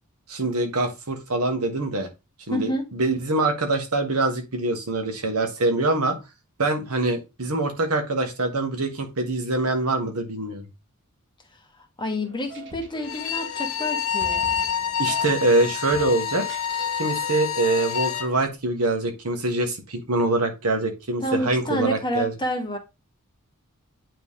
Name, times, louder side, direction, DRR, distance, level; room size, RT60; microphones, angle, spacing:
voice 1, 0.3-2.1 2.5-6.2 6.6-10.6 15.0-16.5 17.0-22.3, right 2 dB, 85° right, 1.6 m, -24 dB
voice 2, 2.5-2.9 12.0-14.4 21.2-22.8, equal, 20° left, 1.4 m, -28 dB
sound 1, 12.2-18.3, right 1 dB, 55° right, 1.4 m, -44 dB
Bowed string instrument, 13.0-18.3, left 8 dB, 70° left, 1.0 m, -27 dB
9.1 x 3.4 x 3.7 m
head